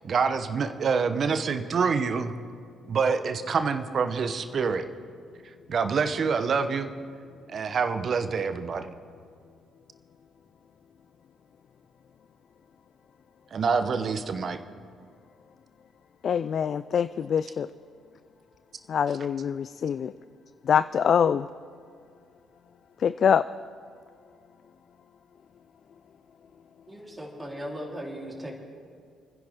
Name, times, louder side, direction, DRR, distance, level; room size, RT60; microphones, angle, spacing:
voice 1, 0.0-2.3 2.8-4.8 5.7-6.9 7.5-8.9 13.5-14.6, right 5 dB, 50° right, 9 dB, 1.0 m, -26 dB
voice 2, 16.2-17.7 18.9-20.1 20.7-21.5 23.0-23.5, left 7 dB, 55° left, 15 dB, 0.3 m, -24 dB
voice 3, 26.9-28.6, equal, 15° right, -3 dB, 3.8 m, -38 dB
28.0 x 10.5 x 3.7 m, 2.2 s
hypercardioid pair, 50°, 0 cm